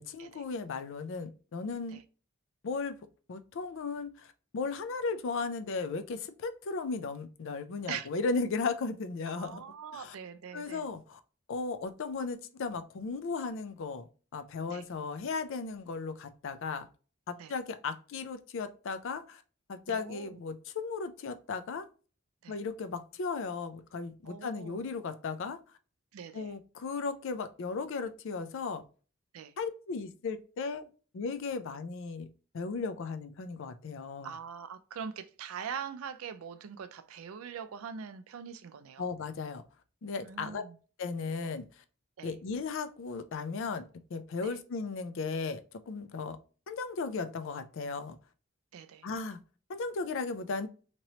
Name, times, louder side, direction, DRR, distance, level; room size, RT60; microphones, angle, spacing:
voice 1, 0.0-2.0 2.6-3.0 3.3-9.6 9.9-10.1 10.5-11.2 11.5-14.1 14.3-16.9 17.3-19.4 19.7-21.9 22.5-25.6 26.3-28.8 29.6-30.9 31.1-32.3 32.5-34.3 39.0-39.6 40.0-40.6 41.0-41.7 42.2-43.8 44.1-46.4 46.7-48.2 49.0-49.4 49.7-50.7, left 4 dB, 65° left, 0.4 m, -36 dB
voice 2, 9.4-10.9 14.7-14.8 17.4-17.5 19.8-20.4 22.4-22.6 24.2-24.8 26.1-26.5 29.3-29.5 34.2-39.1 40.2-40.8 42.2-42.3 44.4-44.6 48.7-49.1, right 7 dB, 80° right, 0.4 m, -43 dB
3.0 x 2.9 x 2.8 m
head